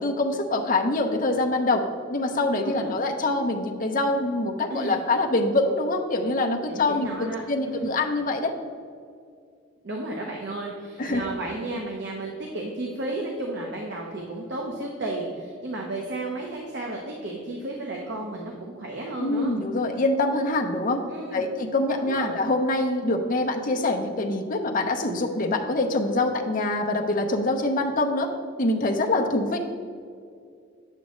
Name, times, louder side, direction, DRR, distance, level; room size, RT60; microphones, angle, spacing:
voice 1, 0.0-1.8 2.1-8.5 11.0-11.3 19.2-21.0 21.3-28.3 28.6-29.6, left 2 dB, 45° left, 3 dB, 0.8 m, -25 dB
voice 2, 2.6-3.0 4.7-5.0 6.7-7.9 9.8-19.6 21.1-21.4 21.9-22.3, right 2 dB, 60° right, -1 dB, 0.9 m, -33 dB
9.3 x 7.5 x 3.1 m, 2.3 s
head